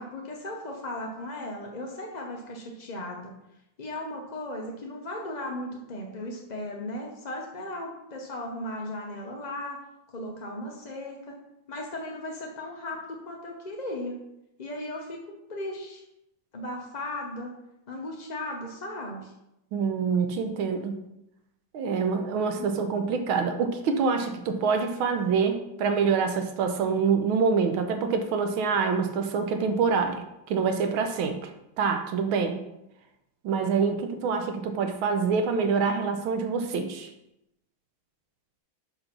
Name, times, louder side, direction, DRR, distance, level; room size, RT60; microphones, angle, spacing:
voice 1, 0.0-3.3 3.8-9.8 10.1-11.3 11.7-14.2 14.6-16.0 16.5-17.5 17.9-19.3 22.6-22.7, left 1 dB, 45° left, 0 dB, 0.5 m, -36 dB
voice 2, 19.7-20.9 21.7-30.2 30.5-31.5 31.8-32.6 33.4-37.1, right 5 dB, 90° right, 6 dB, 1.6 m, -26 dB
6.0 x 5.2 x 5.9 m, 0.87 s
omnidirectional pair, 2.2 m